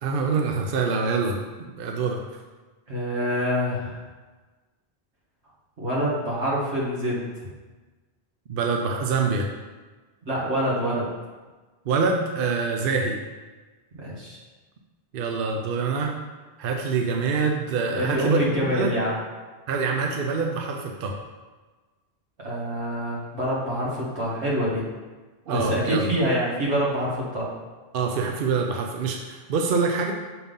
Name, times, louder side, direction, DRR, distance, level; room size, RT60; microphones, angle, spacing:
voice 1, 0.0-2.2 8.5-9.5 11.9-13.2 15.1-16.1 16.6-18.9 19.7-21.1 25.5-26.1 27.9-30.1, right 4 dB, 60° right, 2 dB, 0.8 m, -25 dB
voice 2, 2.9-4.0 5.8-7.2 10.3-11.1 13.9-14.4 17.9-19.2 22.4-24.8 25.5-27.5, equal, 85° right, -6 dB, 2.0 m, -26 dB
6.0 x 3.7 x 5.4 m, 1.3 s
omnidirectional pair, 1.1 m